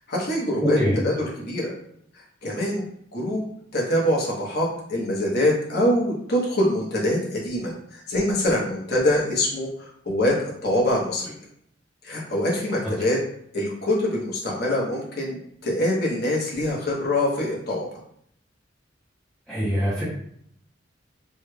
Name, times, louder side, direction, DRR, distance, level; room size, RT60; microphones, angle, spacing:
voice 1, 0.1-0.8 1.0-1.7 2.1-2.9 3.1-3.4 3.7-11.4 12.0-13.2 13.5-15.4 15.6-17.9, left 1 dB, 55° left, -3 dB, 1.1 m, -24 dB
voice 2, 0.6-1.0 19.5-20.0, equal, 5° left, -10 dB, 0.7 m, -23 dB
3.4 x 3.2 x 2.2 m, 0.68 s
head